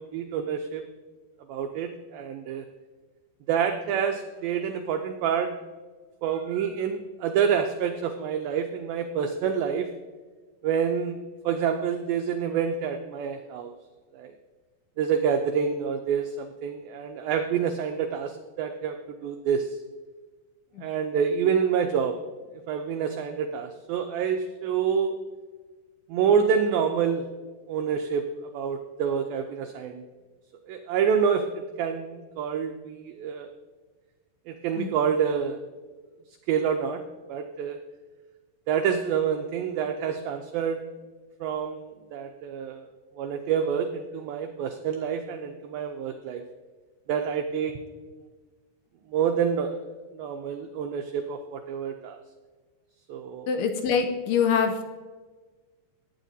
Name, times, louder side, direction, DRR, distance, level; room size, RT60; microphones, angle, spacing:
voice 1, 0.1-0.8 1.5-2.7 3.5-5.5 6.2-9.9 10.6-11.2 11.4-13.7 14.1-14.3 15.0-19.0 19.2-19.8 20.8-22.2 22.5-25.2 26.1-27.3 27.7-28.3 28.5-30.0 30.7-33.5 34.5-35.6 36.5-37.0 37.3-37.8 38.7-40.8 41.4-42.9 43.2-46.4 47.1-47.7 49.1-49.8 50.1-52.2 53.1-53.5, right 7 dB, 90° right, 5 dB, 2.0 m, -27 dB
voice 2, 53.5-54.8, left 6 dB, 80° left, 5 dB, 2.5 m, -24 dB
17.5 x 8.9 x 2.7 m, 1.4 s
omnidirectional pair, 4.9 m